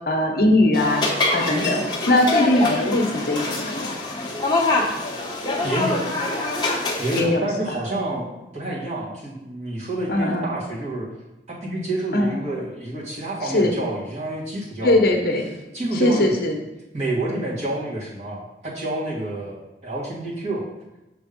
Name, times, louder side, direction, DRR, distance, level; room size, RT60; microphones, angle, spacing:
voice 1, 0.1-1.1 1.3-3.9 7.1-7.7 10.1-10.5 12.1-12.3 13.4-13.8 14.8-15.5 15.9-16.6, left 1 dB, 55° left, 2 dB, 0.9 m, -20 dB
sound 1, 0.7-7.2, left 2 dB, 25° left, 0.9 m, -24 dB
voice 2, 5.6-6.2 7.0-8.3 8.5-11.1 11.5-15.1 15.7-16.3 16.9-20.6, right 2 dB, 40° right, -5 dB, 1.8 m, -28 dB
6.9 x 3.4 x 5.1 m, 0.96 s
head